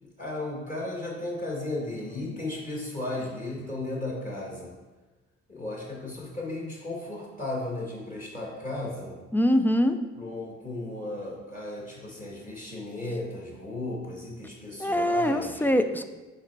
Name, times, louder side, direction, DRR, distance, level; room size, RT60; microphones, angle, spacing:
voice 1, 0.0-4.7 5.5-9.2 10.1-15.7, left 2 dB, 25° left, -3 dB, 1.7 m, -35 dB
voice 2, 9.3-10.0 14.8-16.0, equal, 5° left, 8 dB, 0.4 m, -23 dB
5.7 x 4.3 x 4.7 m, 1.2 s
cardioid pair, 90°, 30 cm